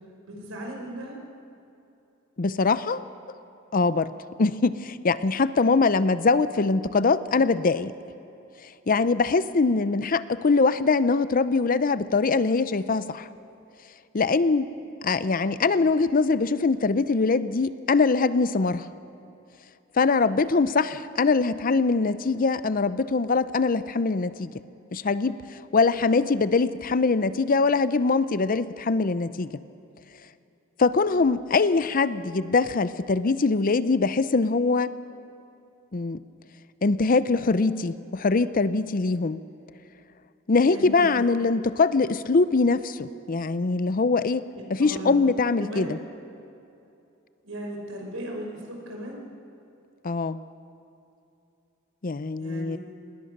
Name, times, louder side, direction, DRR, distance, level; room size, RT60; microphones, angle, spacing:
voice 1, 0.3-1.2 9.7-9.8 40.6-41.3 44.5-45.2 45.6-45.9 47.4-49.2 52.4-52.8, equal, 70° right, 0 dB, 5.5 m, -37 dB
voice 2, 2.4-3.0 3.7-4.1 4.4-7.9 8.9-13.3 14.1-14.7 15.0-18.9 20.0-24.5 24.9-25.4 25.7-29.6 30.8-34.9 35.9-36.2 36.8-39.4 40.5-46.0 50.0-50.4 52.0-52.8, left 4 dB, 45° left, 14 dB, 0.6 m, -23 dB
27.0 x 20.0 x 6.6 m, 2.8 s
head